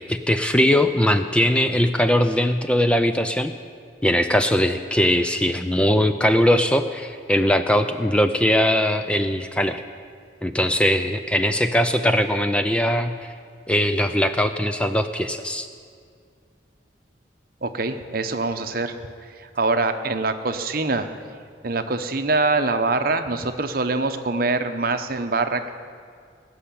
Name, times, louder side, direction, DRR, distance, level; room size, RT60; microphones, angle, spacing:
voice 1, 0.0-3.5 4.0-9.8 10.4-13.1 13.7-15.7, equal, 5° left, 8 dB, 0.4 m, -20 dB
voice 2, 17.6-21.1 21.6-25.7, right 3 dB, 55° right, 8 dB, 0.9 m, -24 dB
18.5 x 6.5 x 8.5 m, 2.2 s
head